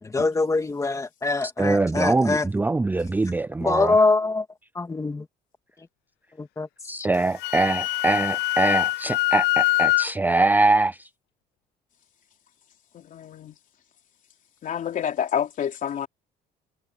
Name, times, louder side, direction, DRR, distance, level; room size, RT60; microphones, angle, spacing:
voice 1, 0.0-2.5 3.6-4.4 4.7-5.3 6.4-6.7, left 3 dB, 20° left, 2.8 m, -23 dB
voice 2, 1.6-4.0 6.8-11.0, right 2 dB, 10° right, 0.5 m, -23 dB
Wind instrument woodwind instrument, 7.2-10.1, left 20 dB, 85° left, 0.4 m, -23 dB
voice 3, 12.9-13.6 14.6-16.1, left 9 dB, 50° left, 3.3 m, -28 dB
cardioid pair, 110°, 17 cm